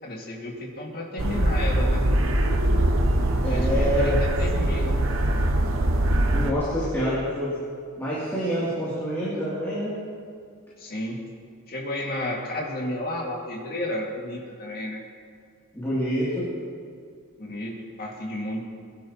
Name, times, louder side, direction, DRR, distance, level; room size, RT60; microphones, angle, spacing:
voice 1, 0.0-2.0 3.5-5.0 10.8-11.2 11.7-15.0 17.4-18.6, left 1 dB, 45° left, -2 dB, 2.2 m, -32 dB
sound 1, 1.2-6.5, right 1 dB, 60° right, 0.9 m, -22 dB
voice 2, 3.4-4.2 6.3-7.6 8.0-10.0 15.7-16.5, equal, 10° left, -10 dB, 3.0 m, -27 dB
22.0 x 11.5 x 3.0 m, 2.1 s
head